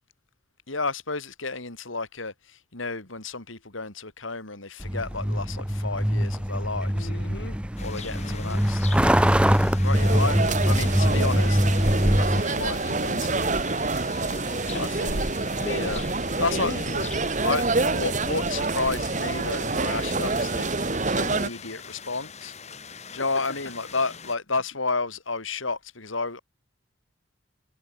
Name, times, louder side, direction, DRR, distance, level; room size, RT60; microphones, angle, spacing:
voice 1, 0.7-7.1 7.8-9.0 9.8-11.6 12.2-13.6 14.8-15.2 15.7-16.0 16.4-16.7 17.4-20.7 21.2-22.5 23.1-26.4, left 3 dB, 90° left, 3.9 m, -31 dB
Truck, 4.8-12.4, equal, 5° right, 2.4 m, -23 dB
voice 2, 6.9-7.6 8.0-8.9 14.3-14.9 15.6-15.9 16.4-17.3 23.3-23.7, left 2 dB, 60° left, 3.9 m, -38 dB
sound 1, 7.8-24.4, left 6 dB, 35° left, 7.0 m, -43 dB
sound 2, 9.9-21.5, right 3 dB, 40° right, 1.4 m, -27 dB
head